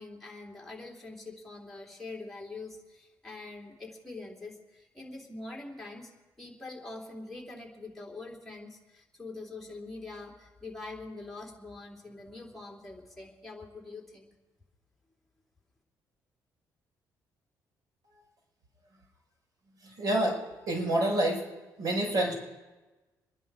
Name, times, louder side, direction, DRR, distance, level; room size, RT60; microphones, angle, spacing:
voice 1, 0.0-6.1 6.4-14.3, left 3 dB, 5° left, -2 dB, 3.3 m, -44 dB
voice 2, 19.8-20.4 20.7-21.5 21.8-22.3, right 1 dB, 60° right, -1 dB, 5.6 m, -27 dB
25.0 x 11.0 x 4.9 m, 1.2 s
cardioid pair, 120°, 7 cm